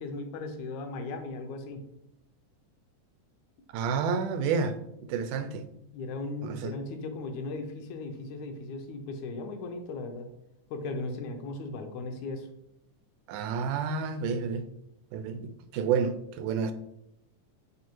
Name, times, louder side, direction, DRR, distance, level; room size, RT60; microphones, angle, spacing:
voice 1, 0.0-1.8 5.9-10.3 10.7-12.5, left 3 dB, 75° left, 2.1 m, -37 dB
voice 2, 3.7-4.8 5.1-5.6 6.4-6.7 13.3-14.7 15.1-16.7, right 6 dB, 85° right, 2.1 m, -30 dB
7.5 x 3.2 x 4.5 m
omnidirectional pair, 3.7 m